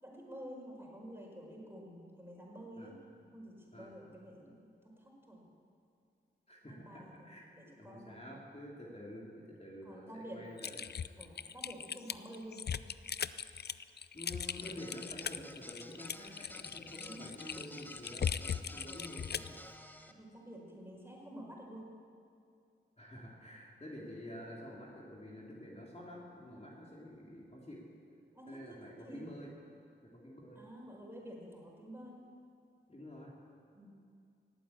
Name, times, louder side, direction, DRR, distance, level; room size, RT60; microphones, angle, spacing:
voice 1, 0.0-2.9 3.3-5.5 6.6-8.2 9.8-10.5 11.2-12.7 16.9-17.3 20.1-21.9 28.3-29.2 30.6-32.2 33.7-33.9, equal, 10° right, -1 dB, 5.4 m, -50 dB
voice 2, 6.5-7.4 7.8-9.3 9.6-10.9 14.1-19.6 23.0-27.9 28.5-29.5 30.1-30.6 32.9-33.3, left 1 dB, 30° left, -4 dB, 3.6 m, -49 dB
Typing, 10.6-19.5, left 7 dB, 50° left, 0.5 m, -39 dB
sound 1, 14.6-20.1, equal, 10° left, 1.2 m, -53 dB
17.5 x 9.0 x 8.8 m, 2.3 s
cardioid pair, 40°, 21 cm